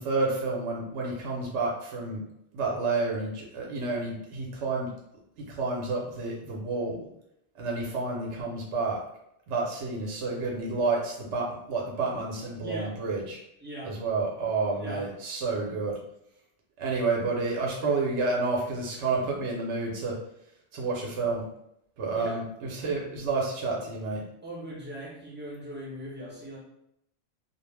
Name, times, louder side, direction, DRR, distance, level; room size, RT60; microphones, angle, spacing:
voice 1, 0.0-2.2 2.5-4.9 5.4-7.0 7.6-9.0 9.5-13.4 13.8-16.0 16.8-20.2 20.7-21.4 22.0-24.2, right 3 dB, 75° right, -2 dB, 0.9 m, -30 dB
voice 2, 12.6-13.0 13.6-14.0 14.7-15.1 22.1-22.4 24.4-26.6, right 1 dB, 15° right, -5 dB, 0.5 m, -39 dB
2.3 x 2.1 x 3.1 m, 0.76 s
omnidirectional pair, 1.2 m